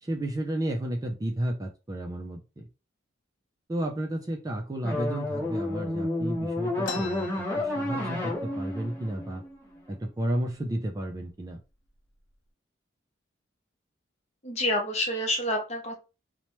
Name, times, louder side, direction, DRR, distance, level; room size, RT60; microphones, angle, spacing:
voice 1, 0.0-2.7 3.7-9.4 9.9-11.6, right 1 dB, 20° right, 2 dB, 0.3 m, -32 dB
sound 1, 4.8-10.0, left 1 dB, 10° left, 1.1 m, -31 dB
sound 2, 6.8-8.4 8.8-8.9 9.1-9.8 10.4-10.5 11.2-11.4 11.9-12.3, left 5 dB, 75° left, 0.5 m, -41 dB
voice 2, 14.4-16.0, left 1 dB, 35° left, 2 dB, 0.7 m, -28 dB
2.9 x 2.1 x 3.0 m, 0.30 s
head